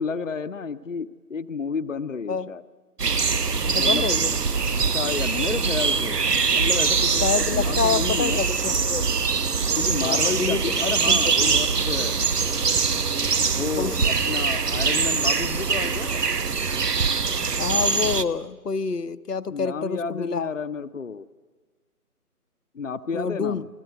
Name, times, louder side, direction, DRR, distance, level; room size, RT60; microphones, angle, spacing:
voice 1, 0.0-2.6 3.7-4.1 4.9-6.3 6.5-7.2 7.5-8.4 9.8-12.2 13.4-16.2 19.5-21.3 22.7-23.7, left 5 dB, 55° left, 12 dB, 0.8 m, -31 dB
sound 1, 3.0-18.2, right 5 dB, 85° right, 1.3 m, -23 dB
voice 2, 3.7-4.4 7.2-9.1 10.0-10.6 11.1-11.7 13.8-14.1 17.6-20.5 23.1-23.6, left 5 dB, 85° left, 10 dB, 1.0 m, -27 dB
29.5 x 19.5 x 8.0 m, 1.4 s
figure-of-eight pair, 170°, 46 cm